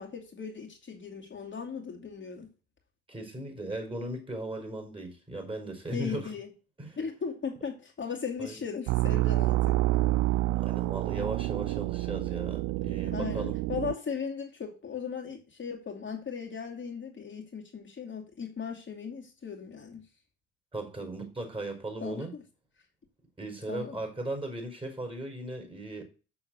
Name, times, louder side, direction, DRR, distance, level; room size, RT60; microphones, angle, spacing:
voice 1, 0.0-2.5 5.9-6.5 7.0-9.8 13.1-20.0 22.0-22.4 23.7-24.0, left 6 dB, 35° left, 2.4 m, -37 dB
voice 2, 3.1-6.3 6.8-7.0 8.4-8.6 10.6-13.5 20.7-22.3 23.4-26.0, right 1 dB, 15° right, 5.0 m, -37 dB
sound 1, 8.9-13.9, right 18 dB, 60° right, 0.4 m, -28 dB
7.1 x 6.3 x 7.8 m
hypercardioid pair, 65°, 33 cm